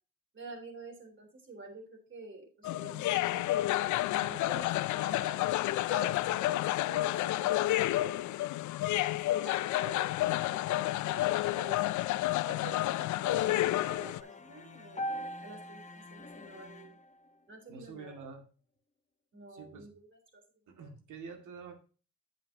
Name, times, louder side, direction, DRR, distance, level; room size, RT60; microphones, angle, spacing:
voice 1, 0.3-3.5 4.1-8.4 9.1-12.0 12.5-15.1 15.4-15.8 16.1-16.9 17.5-18.2 19.3-20.4 20.8-20.9, right 3 dB, 40° right, 4 dB, 3.6 m, -49 dB
sound 1, 2.6-14.2, left 16 dB, 75° left, 0.5 m, -30 dB
sound 2, 13.4-17.3, equal, 25° left, 1.1 m, -42 dB
voice 2, 17.7-18.4 19.5-19.9 20.7-21.8, right 5 dB, 80° right, 5 dB, 2.2 m, -47 dB
9.0 x 8.1 x 2.8 m, 0.35 s
cardioid pair, 90°, 30 cm